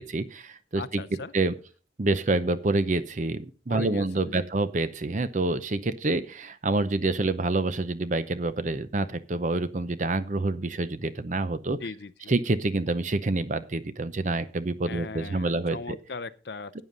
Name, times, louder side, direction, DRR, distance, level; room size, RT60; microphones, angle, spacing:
voice 1, 0.0-1.0 1.3-1.5 2.0-11.8 12.3-16.0 16.7-16.8, right 2 dB, 40° right, 0.6 m, -27 dB
voice 2, 0.8-1.3 3.7-4.5 11.8-12.3 14.9-16.8, left 4 dB, 60° left, 0.6 m, -39 dB
12.5 x 9.3 x 3.9 m
head